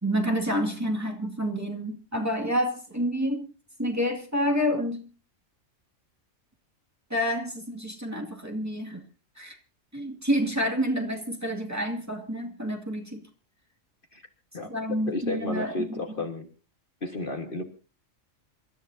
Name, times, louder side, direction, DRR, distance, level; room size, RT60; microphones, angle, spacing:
voice 1, 0.0-3.5 3.8-5.1 7.1-9.0 9.4-9.6 9.9-13.2 14.6-16.0, equal, 10° right, 1 dB, 2.3 m, -28 dB
voice 2, 15.1-16.5 17.0-17.6, left 2 dB, 45° left, 5 dB, 1.7 m, -32 dB
27.5 x 13.5 x 2.7 m, 0.35 s
omnidirectional pair, 1.3 m